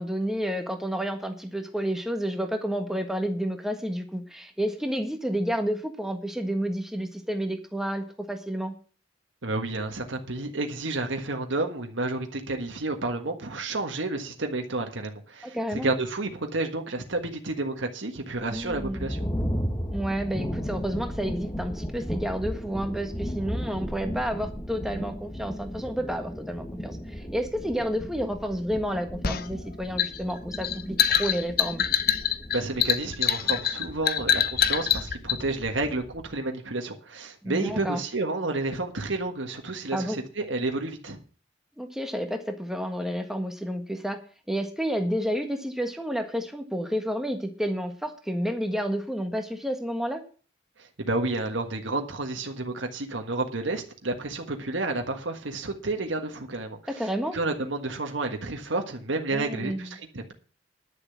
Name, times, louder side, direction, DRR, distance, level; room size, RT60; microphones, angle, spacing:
voice 1, 0.0-8.7 15.4-15.9 18.5-19.1 19.9-31.8 37.4-38.0 39.9-40.2 41.8-44.2 44.5-50.2 56.9-57.4 59.3-60.0, equal, ahead, 1.5 m, -30 dB
voice 2, 9.4-19.3 32.5-41.2 50.8-60.3, right 2 dB, 85° right, 1.5 m, -30 dB
sound 1, 18.4-36.4, equal, 15° left, 1.5 m, -36 dB
sound 2, 29.2-35.4, left 9 dB, 50° left, 0.8 m, -25 dB
11.0 x 6.9 x 8.3 m
head